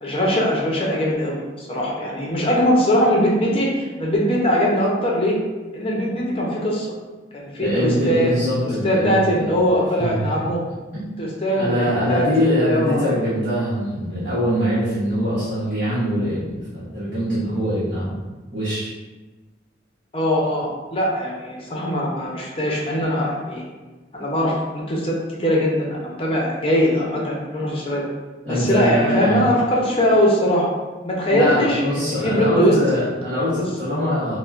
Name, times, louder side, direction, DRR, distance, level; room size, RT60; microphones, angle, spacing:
voice 1, 0.0-5.4 5.7-6.9 7.3-8.4 8.6-10.6 11.2-13.1 20.1-23.7 24.1-25.1 25.4-28.0 28.5-30.7 31.0-32.8 33.6-33.7, equal, 30° left, -3 dB, 0.6 m, -21 dB
voice 2, 7.6-9.6 10.0-10.3 10.9-11.2 11.5-18.2 18.5-18.9 28.4-29.5 31.3-34.4, equal, 45° right, -12 dB, 1.0 m, -23 dB
5.3 x 2.1 x 2.5 m, 1.2 s
head